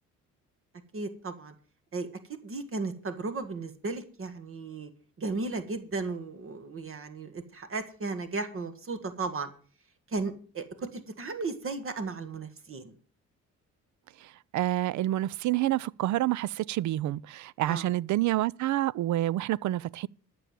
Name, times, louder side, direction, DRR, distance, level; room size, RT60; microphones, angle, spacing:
voice 1, 0.9-1.5 1.9-2.1 2.4-4.9 5.2-9.5 10.1-12.9 17.7-17.9, right 3 dB, 45° right, 1.8 m, -35 dB
voice 2, 14.2-20.1, right 15 dB, 70° right, 0.5 m, -28 dB
12.5 x 7.0 x 7.4 m
cardioid pair, 90°, 30 cm